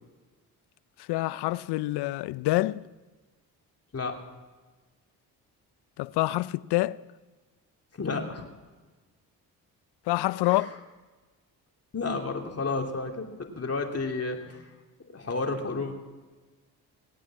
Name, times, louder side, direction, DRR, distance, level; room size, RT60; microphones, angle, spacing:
voice 1, 1.0-2.9 6.0-7.0 10.1-10.7, left 18 dB, 75° left, 0.5 m, -27 dB
voice 2, 8.0-8.5 10.5-10.7 11.9-14.7 15.1-15.9, left 3 dB, 35° left, 2.8 m, -31 dB
19.0 x 9.0 x 7.3 m
supercardioid pair, 60°, 40 cm